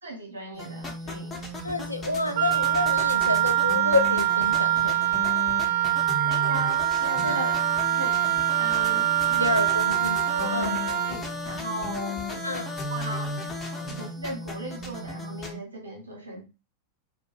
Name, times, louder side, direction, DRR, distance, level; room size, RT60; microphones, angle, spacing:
voice 1, 0.0-1.4 6.0-7.6 7.9-8.2 8.6-9.5 9.8-9.9 10.3-12.6 12.9-13.3 13.9-16.5, right 1 dB, 75° right, 0.7 m, -38 dB
sound 1, 0.5-15.5, left 2 dB, 20° left, 0.7 m, -35 dB
voice 2, 1.6-5.1 7.2-7.5 9.4-10.2 10.5-10.8 12.4-12.7, left 2 dB, 85° left, 0.3 m, -28 dB
Wind instrument woodwind instrument, 2.4-11.2, right 13 dB, 50° right, 0.4 m, -24 dB
2.3 x 2.1 x 3.1 m
figure-of-eight pair, 90°, 0 cm